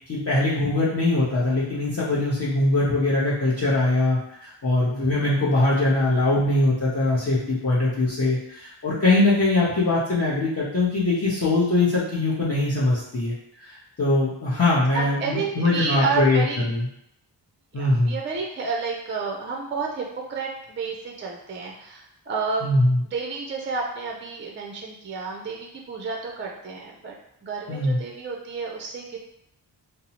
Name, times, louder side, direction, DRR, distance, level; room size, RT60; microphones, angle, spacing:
voice 1, 0.1-13.3 13.6-16.9 17.7-18.2 22.6-23.0 27.7-28.0, left 2 dB, 35° left, -8 dB, 0.7 m, -22 dB
voice 2, 14.9-16.6 17.7-22.7 23.1-27.2 27.4-29.2, right 4 dB, 30° right, 0 dB, 0.4 m, -30 dB
2.7 x 2.0 x 2.8 m, 0.77 s
cardioid pair, 65°, 44 cm